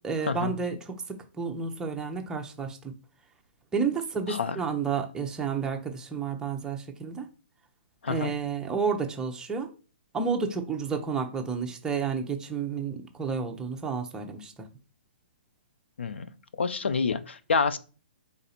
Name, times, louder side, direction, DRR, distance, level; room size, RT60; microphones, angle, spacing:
voice 1, 0.0-2.9 3.7-7.3 8.1-9.7 10.1-14.7, right 5 dB, 10° right, 3 dB, 0.7 m, -31 dB
voice 2, 16.6-17.8, left 5 dB, 80° left, 11 dB, 0.5 m, -27 dB
4.0 x 2.6 x 4.2 m, 0.36 s
hypercardioid pair, 135°, 6 cm